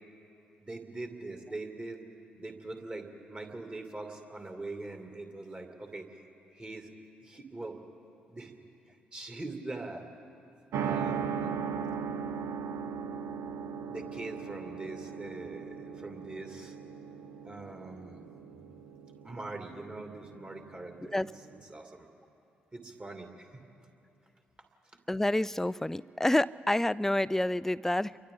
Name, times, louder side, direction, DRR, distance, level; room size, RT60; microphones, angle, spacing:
voice 1, 0.6-2.0 2.4-6.1 6.5-6.9 7.2-7.8 8.3-8.5 9.1-10.1 10.7-11.6 13.9-16.7 17.4-18.2 19.2-21.3 21.7-22.1 22.7-23.6, right 2 dB, 25° right, 3 dB, 2.7 m, -42 dB
sound 1, 10.7-21.6, right 6 dB, 55° right, 0.7 m, -38 dB
voice 2, 25.1-28.2, left 1 dB, 10° left, 19 dB, 0.4 m, -28 dB
30.0 x 23.0 x 3.9 m, 2.7 s
figure-of-eight pair, 40°, 5 cm